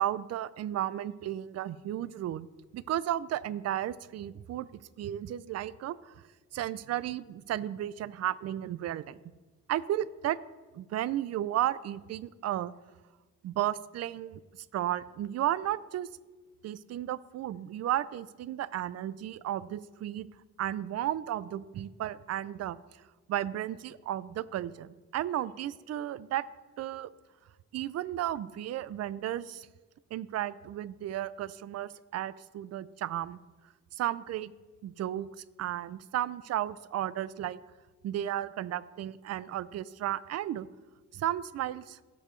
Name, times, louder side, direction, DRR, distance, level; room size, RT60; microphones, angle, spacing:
voice 1, 0.0-2.5 2.7-4.7 5.0-6.2 6.5-9.2 9.7-10.4 10.7-12.7 13.4-14.4 14.7-16.1 16.6-20.3 20.6-22.8 23.3-26.4 26.8-27.1 27.7-29.7 30.1-33.4 33.9-34.5 34.8-35.3 35.6-37.6 38.0-40.7 41.1-42.0, right 12 dB, 55° right, 18 dB, 0.5 m, -33 dB
16.0 x 6.8 x 3.1 m, 1.2 s
cardioid pair, 90°, 30 cm